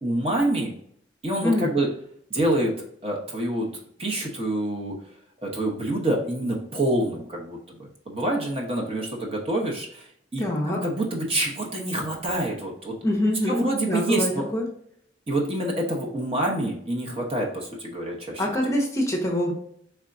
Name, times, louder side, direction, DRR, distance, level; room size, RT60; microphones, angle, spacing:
voice 1, 0.0-0.7 1.2-1.9 2.3-2.7 3.0-3.7 4.0-5.0 5.4-13.0 13.5-14.5 15.3-18.4, right 1 dB, 30° right, -1 dB, 0.9 m, -27 dB
voice 2, 10.4-10.8 13.0-13.6 13.9-14.7 18.4-19.5, left 1 dB, 15° left, 0 dB, 0.7 m, -24 dB
4.3 x 3.4 x 2.5 m, 0.68 s
head